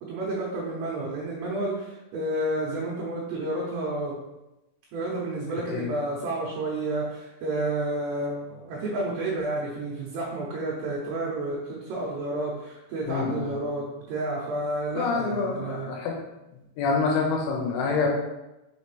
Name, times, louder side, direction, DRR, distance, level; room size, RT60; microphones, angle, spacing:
voice 1, 0.0-4.1 4.9-16.0, right 2 dB, 75° right, -5 dB, 2.8 m, -30 dB
voice 2, 13.1-13.5 14.9-16.1 16.8-18.1, left 4 dB, 75° left, 0 dB, 3.2 m, -26 dB
6.8 x 5.1 x 3.3 m, 0.96 s
omnidirectional pair, 5.9 m